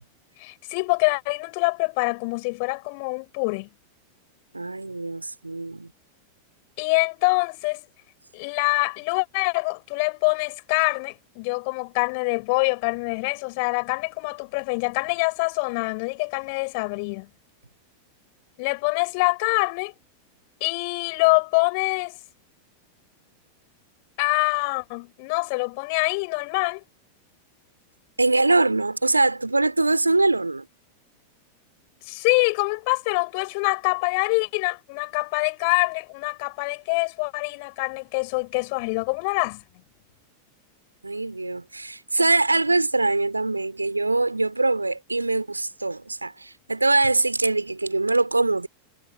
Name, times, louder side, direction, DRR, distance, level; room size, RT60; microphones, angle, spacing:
voice 1, 0.4-3.7 6.8-7.8 8.3-17.3 18.6-19.9 20.6-22.2 24.2-26.8 32.1-39.6, left 31 dB, 45° left, 6.8 m, -25 dB
voice 2, 4.5-5.9 28.2-30.7 41.0-48.7, right 2 dB, 80° right, 2.8 m, -23 dB
figure-of-eight pair, 90°, 0 cm